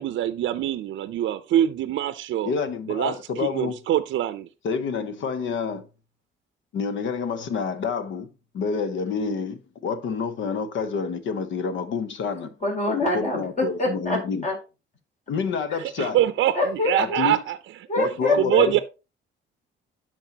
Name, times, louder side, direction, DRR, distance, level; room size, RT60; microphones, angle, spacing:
voice 1, 0.0-2.5 2.9-4.5 15.8-17.6 18.3-18.8, right 12 dB, 75° right, 0.5 m, -24 dB
voice 2, 2.4-3.8 4.6-5.9 6.7-12.5 13.1-14.5 15.3-16.2 17.0-17.4 17.9-18.8, left 5 dB, 75° left, 1.0 m, -28 dB
voice 3, 12.6-14.6 15.7-15.8 16.5-17.2 17.9-18.8, left 2 dB, 40° left, 4.0 m, -25 dB
11.5 x 4.6 x 2.8 m
cardioid pair, 90°, 20 cm